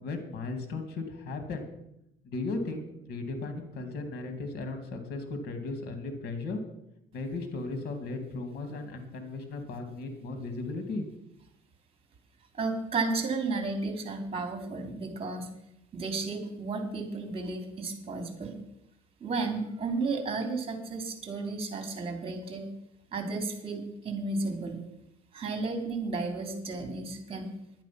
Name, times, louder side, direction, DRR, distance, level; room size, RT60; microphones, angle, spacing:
voice 1, 0.0-1.7 2.2-6.6 7.1-11.1, left 3 dB, 70° left, 6 dB, 2.4 m, -36 dB
voice 2, 12.6-15.5 15.9-18.5 19.2-22.7 23.1-24.8 25.3-27.5, right 3 dB, 35° right, 5 dB, 3.2 m, -33 dB
10.5 x 10.0 x 5.9 m, 0.81 s
cardioid pair, 110°, 17 cm